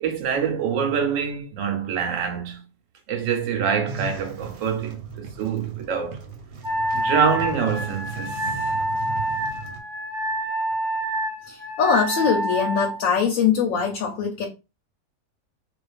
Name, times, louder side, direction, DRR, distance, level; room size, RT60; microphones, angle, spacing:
voice 1, 0.0-2.7 3.1-6.2 6.9-8.8, right 7 dB, 65° right, 1.0 m, -25 dB
sound 1, 3.8-9.8, right 5 dB, 85° right, 1.2 m, -37 dB
Wind instrument woodwind instrument, 6.6-13.0, right 1 dB, 15° right, 0.9 m, -27 dB
voice 2, 11.4-14.5, left 7 dB, 70° left, 0.9 m, -22 dB
2.4 x 2.4 x 2.3 m
omnidirectional pair, 1.6 m